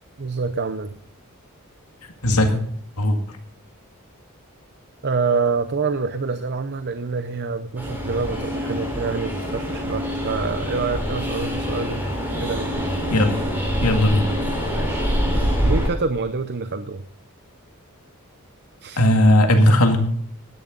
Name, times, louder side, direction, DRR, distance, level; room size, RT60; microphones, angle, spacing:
voice 1, 0.2-0.9 5.0-12.1 12.4-12.8 14.7-15.1 15.6-17.0 18.8-19.0, right 4 dB, 50° right, 11 dB, 0.7 m, -26 dB
voice 2, 2.2-2.6 3.0-3.2 13.1-13.4 13.8-14.3 19.0-20.0, left 1 dB, 85° left, 5 dB, 2.1 m, -17 dB
Train, 7.8-15.9, equal, 10° right, 4.4 m, -25 dB
16.5 x 10.5 x 3.9 m, 0.64 s
head